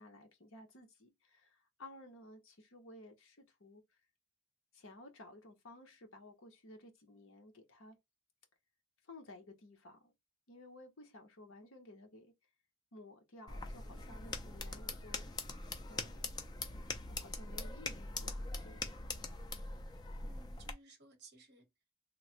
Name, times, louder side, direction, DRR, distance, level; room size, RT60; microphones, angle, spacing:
voice 1, 0.0-3.8 4.7-8.0 9.0-10.1 10.5-12.3 12.9-15.3 15.9-16.3 17.1-19.0 19.3-19.5, left 1 dB, 60° left, 0.8 m, -55 dB
sound 1, 13.5-20.7, left 3 dB, 20° left, 0.3 m, -43 dB
voice 2, 13.9-14.9 20.2-21.7, right 3 dB, 50° right, 0.9 m, -61 dB
3.1 x 2.0 x 2.8 m
head